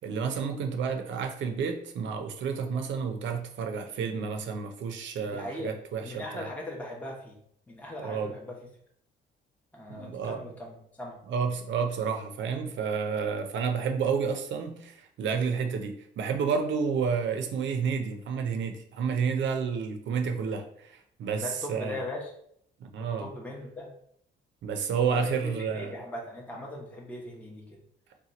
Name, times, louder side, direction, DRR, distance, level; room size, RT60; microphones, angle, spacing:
voice 1, 0.0-6.5 8.0-8.3 9.9-10.4 11.3-22.0 22.8-23.3 24.6-25.9, right 6 dB, 70° right, 5 dB, 0.6 m, -30 dB
voice 2, 5.2-7.3 7.7-8.6 9.7-11.2 21.4-22.3 23.0-23.9 25.1-27.8, left 1 dB, 5° left, -2 dB, 0.7 m, -39 dB
2.8 x 2.2 x 3.9 m, 0.68 s
cardioid pair, 90°, 20 cm